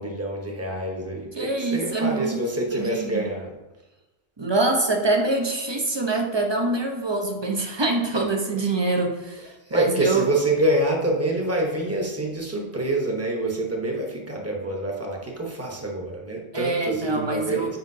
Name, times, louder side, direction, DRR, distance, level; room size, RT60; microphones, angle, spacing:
voice 1, 0.0-3.6 8.1-8.2 9.6-17.8, right 1 dB, 15° right, 0 dB, 0.8 m, -26 dB
voice 2, 1.4-2.4 2.7-3.3 4.4-10.2 16.5-17.8, right 2 dB, 30° right, 2 dB, 0.5 m, -25 dB
7.9 x 5.1 x 2.7 m, 1.0 s
omnidirectional pair, 1.4 m